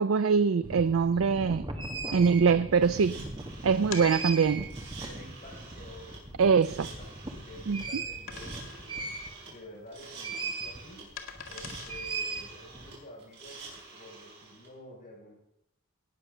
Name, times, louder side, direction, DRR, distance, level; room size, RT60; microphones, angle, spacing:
voice 1, 0.0-1.6 2.1-3.2 3.6-4.6 6.4-6.7 7.7-7.8, right 5 dB, 90° right, 13 dB, 0.4 m, -23 dB
sound 1, 0.6-9.7 10.2-10.8 11.1-12.9, right 3 dB, 25° right, 1.5 m, -38 dB
sound 2, 2.8-14.7, right 4 dB, 55° right, 6.0 m, -48 dB
sound 3, 3.9-4.8 5.5-5.6 6.1-6.2 6.6-7.6 8.3-9.0 9.3-9.5 9.9-12.4, left 6 dB, 85° left, 2.0 m, -44 dB
voice 2, 3.9-4.2 4.9-6.2 6.6-7.1 7.4-11.1 11.5-13.7 14.0-15.3, left 1 dB, 45° left, -3 dB, 5.8 m, -49 dB
19.0 x 7.2 x 6.7 m, 0.82 s
head